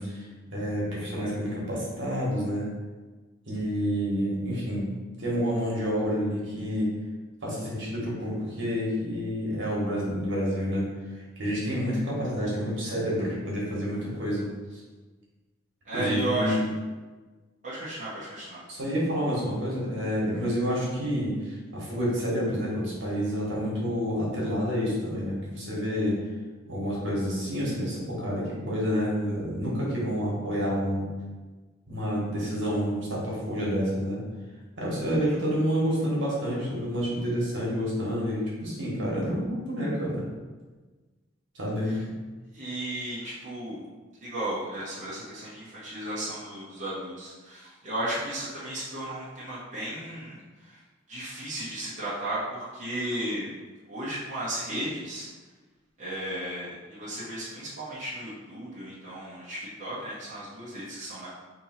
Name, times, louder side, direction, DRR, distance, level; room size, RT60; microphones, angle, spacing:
voice 1, 0.0-2.7 3.5-6.9 7.4-10.9 11.4-14.8 15.9-16.7 18.7-26.2 26.6-31.0 31.9-34.2 34.8-40.2 41.5-42.1, equal, 65° right, -5 dB, 1.4 m, -29 dB
voice 2, 15.8-16.6 17.6-18.6 41.9-42.0 42.5-43.8 44.2-50.8 51.1-53.4 53.9-55.3 56.0-61.3, right 1 dB, 40° right, -10 dB, 1.0 m, -34 dB
3.5 x 2.9 x 4.4 m, 1.3 s
head